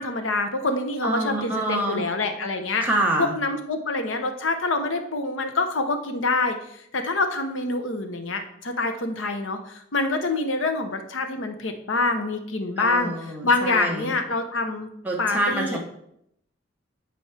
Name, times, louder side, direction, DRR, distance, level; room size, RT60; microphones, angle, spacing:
voice 1, 0.0-2.8 3.3-14.9 15.2-15.8, left 3 dB, 80° left, 6 dB, 0.9 m, -26 dB
voice 2, 1.0-2.0 2.8-3.3 12.8-14.1 15.0-15.8, right 1 dB, 10° right, -2 dB, 0.9 m, -26 dB
10.5 x 4.3 x 3.4 m, 0.74 s
head